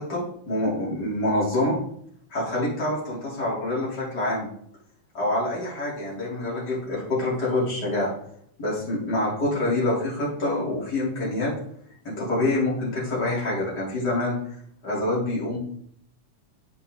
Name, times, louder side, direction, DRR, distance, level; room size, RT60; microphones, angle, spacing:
voice 1, 0.0-1.7 2.3-4.5 5.1-8.1 8.6-11.5 12.0-14.4 14.8-15.6, left 1 dB, 30° left, -6 dB, 4.2 m, -26 dB
10.0 x 8.1 x 4.0 m, 0.68 s
omnidirectional pair, 3.7 m